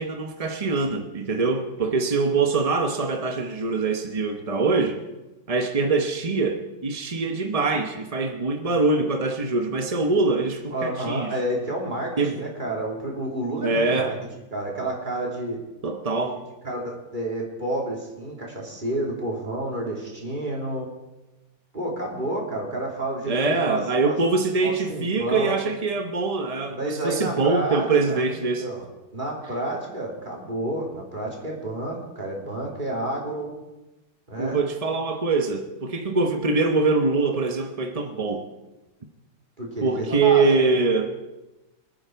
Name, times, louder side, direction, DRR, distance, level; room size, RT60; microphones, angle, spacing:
voice 1, 0.0-5.0 5.5-11.3 12.2-12.4 13.6-14.1 15.8-16.4 23.3-28.7 34.4-38.5 39.8-41.1, right 3 dB, 45° right, 5 dB, 0.4 m, -23 dB
voice 2, 10.7-14.1 14.5-15.6 16.6-20.9 21.7-24.2 24.6-25.6 26.7-28.9 29.1-33.5 34.3-34.6 39.6-40.7, right 1 dB, 20° right, -2 dB, 3.3 m, -30 dB
25.5 x 9.1 x 4.6 m, 1.0 s
omnidirectional pair, 2.3 m